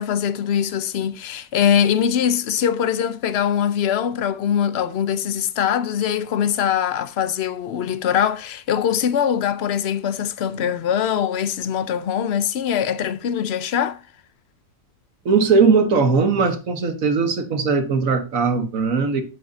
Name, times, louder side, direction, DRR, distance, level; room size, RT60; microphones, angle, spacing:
voice 1, 0.0-14.0, left 9 dB, 60° left, 0.6 m, -22 dB
voice 2, 15.2-19.2, right 5 dB, 50° right, 1.6 m, -19 dB
8.8 x 7.8 x 2.7 m
omnidirectional pair, 1.9 m